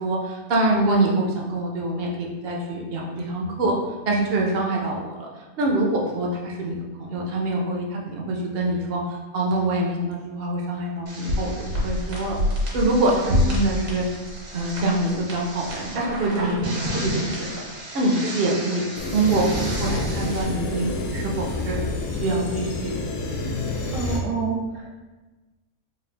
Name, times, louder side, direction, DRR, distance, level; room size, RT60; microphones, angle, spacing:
voice 1, 0.0-3.7 4.1-5.3 5.6-6.7 7.1-9.0 9.3-12.4 12.7-14.0 14.5-16.5 16.9-18.8 19.1-21.8 22.2-23.0, right 2 dB, 60° right, -1 dB, 0.7 m, -25 dB
sound 1, 11.1-20.4, left 1 dB, 75° right, 1.4 m, -29 dB
sound 2, 19.0-24.2, left 2 dB, 65° left, 0.8 m, -28 dB
voice 2, 23.9-25.0, right 6 dB, 90° right, -2 dB, 1.1 m, -28 dB
3.9 x 2.3 x 3.2 m, 1.2 s
omnidirectional pair, 1.5 m